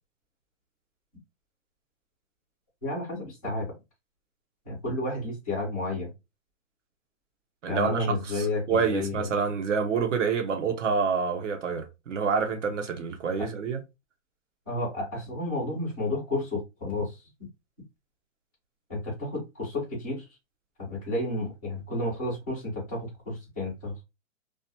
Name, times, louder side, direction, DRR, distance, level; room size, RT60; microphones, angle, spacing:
voice 1, 2.8-3.7 4.6-6.1 7.7-9.3 13.4-13.5 14.7-17.2 18.9-20.2 20.8-24.0, left 2 dB, 10° left, 0.4 m, -31 dB
voice 2, 7.6-13.8, right 5 dB, 65° right, 0.8 m, -27 dB
2.3 x 2.2 x 2.8 m
hypercardioid pair, 165°, 40 cm